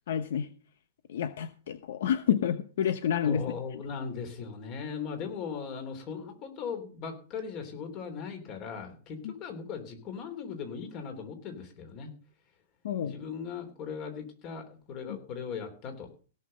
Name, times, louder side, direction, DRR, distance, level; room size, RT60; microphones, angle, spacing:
voice 1, 0.1-0.5 1.1-3.4 9.2-9.3 12.8-13.1 15.1-15.2, left 9 dB, 70° left, 11 dB, 1.0 m, -29 dB
voice 2, 3.2-12.1 13.0-16.1, left 6 dB, 35° left, 7 dB, 3.4 m, -38 dB
17.0 x 5.8 x 6.6 m, 0.39 s
hypercardioid pair, 150°, 0 cm